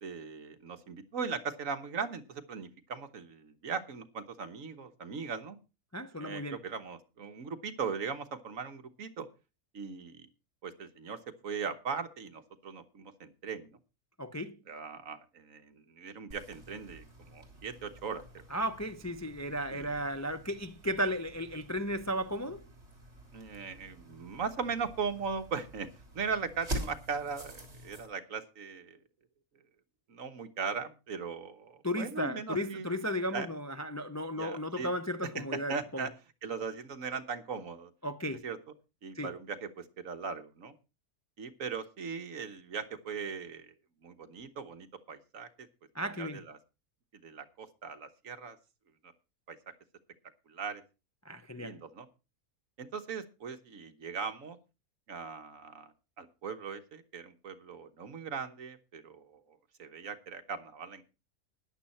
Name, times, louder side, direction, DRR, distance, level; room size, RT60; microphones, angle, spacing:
voice 1, 0.0-5.6 6.2-9.3 9.7-10.3 10.6-11.2 11.4-13.7 14.7-18.4 19.7-19.9 23.3-25.9 26.1-29.0 30.1-33.0 33.3-33.5 34.3-34.9 35.2-36.1 36.4-37.9 38.4-38.6 39.0-40.7 41.4-43.7 44.0-45.5 46.0-46.6 47.2-48.6 49.5-49.6 50.5-50.8 51.5-52.1 52.8-54.6 55.1-61.0, right 5 dB, 60° right, 1.5 m, -39 dB
voice 2, 5.9-6.6 14.2-14.5 18.5-22.6 31.8-36.1 38.0-38.4 39.2-39.3 45.9-46.4 51.3-51.8, equal, 25° left, 0.4 m, -35 dB
sound 1, 16.3-28.1, right 1 dB, 45° right, 3.6 m, -46 dB
13.5 x 10.5 x 4.3 m
omnidirectional pair, 1.6 m